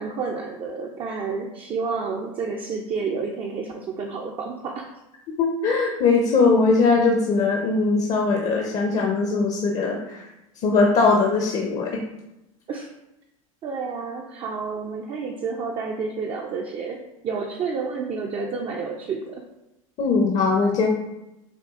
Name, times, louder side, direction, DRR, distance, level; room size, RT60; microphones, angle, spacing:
voice 1, 0.0-4.9 12.7-12.9 13.6-19.4, right 5 dB, 30° right, 0 dB, 0.4 m, -30 dB
voice 2, 5.4-10.2 10.6-12.0 20.0-20.9, left 4 dB, 40° left, 0 dB, 0.6 m, -20 dB
5.9 x 2.3 x 2.4 m, 0.92 s
hypercardioid pair, 95°, 18 cm